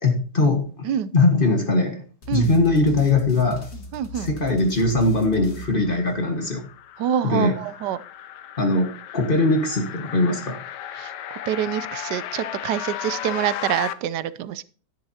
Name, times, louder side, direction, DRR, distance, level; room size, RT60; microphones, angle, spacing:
voice 1, 0.0-2.0 2.3-3.7 4.2-6.6 7.2-7.6 8.6-10.6, left 2 dB, 30° left, 4 dB, 1.6 m, -21 dB
sound 1, 2.2-6.5, left 2 dB, 50° left, 2.1 m, -39 dB
voice 2, 3.9-4.3 7.0-8.0 10.9-11.1 11.5-14.6, right 10 dB, 80° right, 16 dB, 1.2 m, -26 dB
sound 2, 5.6-13.9, left 11 dB, 80° left, 1.3 m, -35 dB
10.5 x 10.5 x 2.8 m, 0.40 s
omnidirectional pair, 1.8 m